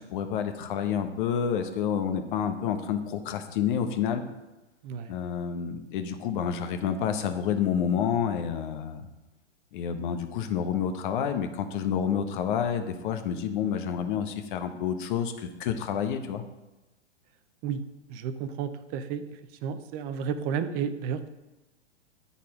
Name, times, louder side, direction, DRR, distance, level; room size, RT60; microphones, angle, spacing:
voice 1, 0.1-4.2 5.1-9.1 9.7-16.4, left 8 dB, 45° left, 7 dB, 0.9 m, -29 dB
voice 2, 4.8-5.2 17.6-17.8 18.1-19.2 19.6-21.3, right 7 dB, 25° right, 11 dB, 0.6 m, -32 dB
12.5 x 4.3 x 4.7 m, 1.0 s
hypercardioid pair, 115°, 34 cm